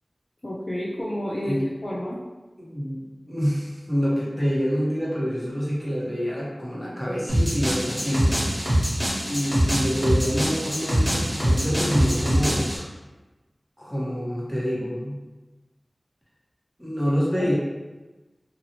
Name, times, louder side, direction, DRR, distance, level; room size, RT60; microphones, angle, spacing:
voice 1, 0.4-1.6 1.8-2.2 17.4-17.6, equal, 45° left, -7 dB, 0.5 m, -30 dB
voice 2, 2.6-8.6 9.2-12.9 13.8-15.2 16.8-17.6, equal, 10° left, -7 dB, 1.2 m, -26 dB
sound 1, 7.3-12.8, equal, 5° right, 1.4 m, -23 dB
2.9 x 2.5 x 2.9 m, 1.1 s
wide cardioid pair, 45°, 0 cm